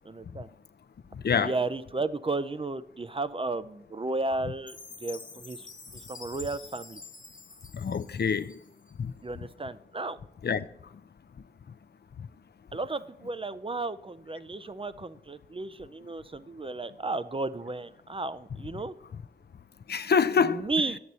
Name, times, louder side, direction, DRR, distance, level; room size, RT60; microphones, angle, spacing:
voice 1, 0.0-0.5 1.3-5.7 5.9-7.0 9.2-10.2 12.7-18.9 20.4-21.0, right 3 dB, 30° right, 0.5 m, -33 dB
Chime, 4.7-8.9, left 4 dB, 50° left, 1.2 m, -47 dB
voice 2, 7.7-8.6 9.0-9.1 10.4-10.6 19.9-20.7, left 6 dB, 70° left, 0.5 m, -25 dB
10.5 x 7.8 x 4.1 m
wide cardioid pair, 60°, 17 cm